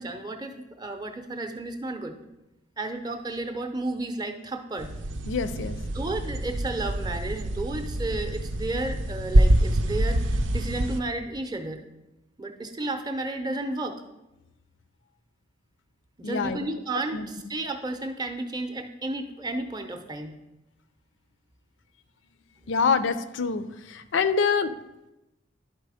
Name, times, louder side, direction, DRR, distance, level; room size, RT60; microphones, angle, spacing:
voice 1, 0.0-2.2 2.8-4.9 5.8-11.8 12.4-14.0 16.2-20.3, right 2 dB, 20° right, 6 dB, 0.6 m, -32 dB
sound 1, 4.8-11.0, right 1 dB, 75° right, 0.6 m, -25 dB
voice 2, 5.3-5.8 16.2-16.7 17.1-17.3 22.7-24.7, left 5 dB, 75° left, 13 dB, 0.4 m, -26 dB
11.0 x 4.1 x 4.9 m, 0.99 s
head